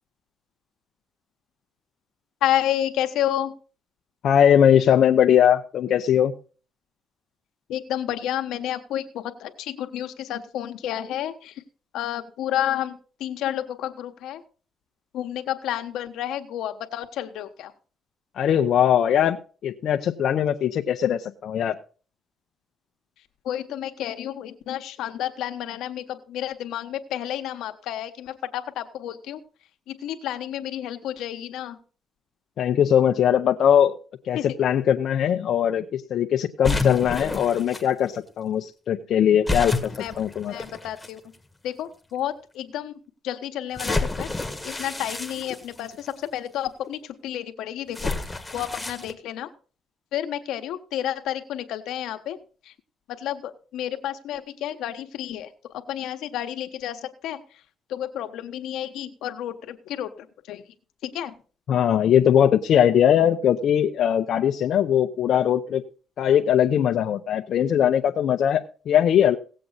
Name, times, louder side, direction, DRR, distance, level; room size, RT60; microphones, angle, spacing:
voice 1, 2.4-3.5 7.7-11.5 11.9-14.4 15.1-17.7 23.4-29.4 29.9-31.8 34.4-34.5 40.0-40.1 40.5-41.2 41.6-42.9 43.2-44.3 44.6-48.2 48.5-49.5 50.1-52.4 53.2-55.5 55.9-57.4 57.9-60.1 60.5-60.6 61.1-61.3, left 11 dB, 85° left, 8 dB, 1.2 m, -30 dB
voice 2, 4.2-6.3 18.4-19.4 19.6-21.8 32.6-33.9 34.2-39.9 40.2-40.6 61.7-65.8 66.2-69.4, left 9 dB, 70° left, 4 dB, 0.7 m, -20 dB
sound 1, 36.6-37.8 39.5-41.1 41.9-42.0 43.8-46.1 47.9-49.1, left 3 dB, 10° left, 1.6 m, -29 dB
17.5 x 7.7 x 4.1 m, 0.38 s
cardioid pair, 90°, 0 cm